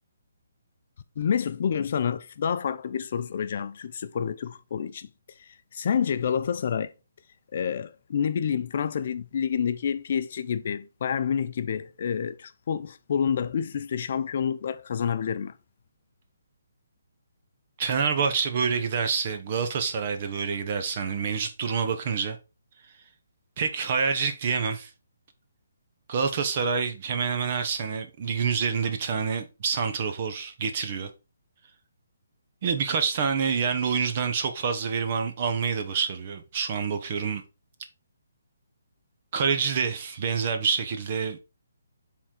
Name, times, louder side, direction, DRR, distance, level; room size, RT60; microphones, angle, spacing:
voice 1, 1.2-5.1 5.4-6.9 7.5-15.5, left 7 dB, 45° left, 0.6 m, -28 dB
voice 2, 17.8-22.4 23.6-24.9 26.1-31.1 32.6-37.4 39.3-41.4, right 6 dB, 35° right, 0.8 m, -27 dB
6.9 x 3.7 x 4.4 m
hypercardioid pair, 170°, 0 cm